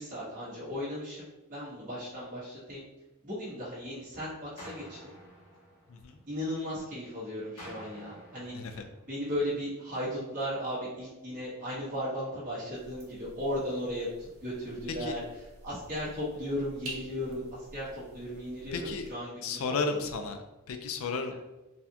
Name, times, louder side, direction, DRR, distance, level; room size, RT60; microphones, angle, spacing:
voice 1, 0.0-2.8 3.2-5.1 6.3-8.6 9.1-15.2 15.6-19.6, equal, 35° right, -10 dB, 1.3 m, -36 dB
sound 1, 4.6-6.6 7.6-9.6, equal, 85° left, 1.4 m, -50 dB
voice 2, 5.9-6.2 8.5-8.9 14.9-15.2 18.7-19.1 19.4-21.3, left 4 dB, 65° left, 6 dB, 0.4 m, -34 dB
sound 2, 12.7-19.1, right 1 dB, 80° right, 1.2 m, -49 dB
4.0 x 2.6 x 2.8 m, 1.1 s
head